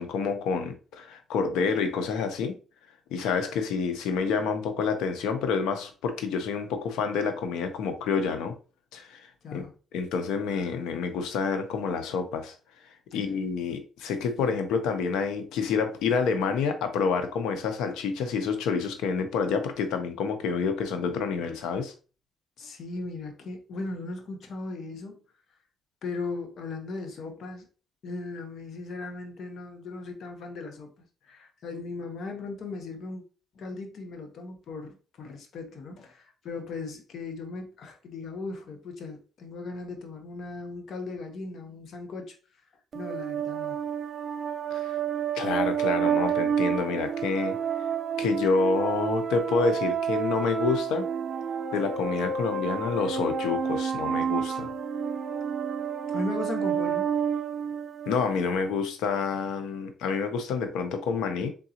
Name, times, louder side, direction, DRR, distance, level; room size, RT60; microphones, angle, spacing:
voice 1, 0.0-2.6 3.1-8.5 8.9-9.2 9.5-9.6 9.9-12.5 13.1-21.9 44.7-44.9 45.3-47.6 48.2-51.1 51.7-54.7 58.1-61.5, left 5 dB, 90° left, 0.7 m, -28 dB
voice 2, 22.6-25.1 26.0-27.7 28.0-33.2 33.5-42.3 42.9-43.8 56.1-57.1, left 3 dB, 65° left, 1.0 m, -37 dB
sound 1, 42.9-58.4, right 7 dB, 50° right, 0.4 m, -29 dB
3.8 x 3.7 x 2.9 m
cardioid pair, 90°, 0 cm